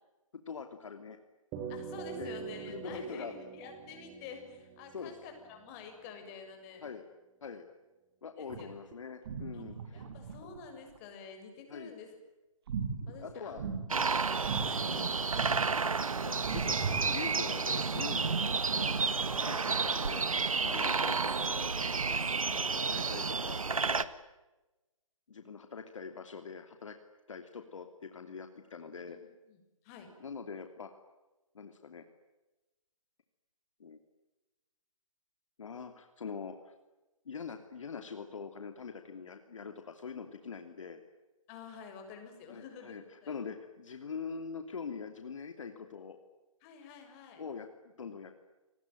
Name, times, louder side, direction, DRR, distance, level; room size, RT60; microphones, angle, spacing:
voice 1, 0.5-1.2 2.2-2.4 2.6-3.3 4.9-5.1 6.8-7.0 7.4-7.7 8.2-10.0 11.7-11.9 13.2-13.6 14.8-15.1 16.1-18.3 18.7-19.0 19.4-20.3 20.6-21.7 22.0-22.1 22.4-24.1 25.3-27.0 27.3-29.2 30.2-30.9 31.5-32.0 33.8-34.0 35.6-36.7 37.2-41.0 42.5-46.2 47.4-48.4, left 5 dB, 65° left, 6 dB, 2.9 m, -43 dB
sound 1, 1.5-6.1, right 6 dB, 20° right, 3.0 m, -44 dB
voice 2, 1.7-6.9 8.4-8.7 9.5-9.6 9.9-12.2 13.1-13.7 14.3-14.9 18.5-19.1 20.8-21.1 28.8-30.1 41.5-43.4 46.6-47.4, left 5 dB, 25° left, 5 dB, 6.8 m, -49 dB
sound 2, 8.5-8.9 9.2-11.0 12.7-14.1 14.4-15.0 15.3-16.0 16.4-17.3, right 5 dB, 45° right, 4.0 m, -38 dB
sound 3, 13.9-24.0, right 4 dB, 80° right, 1.7 m, -31 dB
29.5 x 20.5 x 9.3 m, 1.1 s
figure-of-eight pair, 145°, 18 cm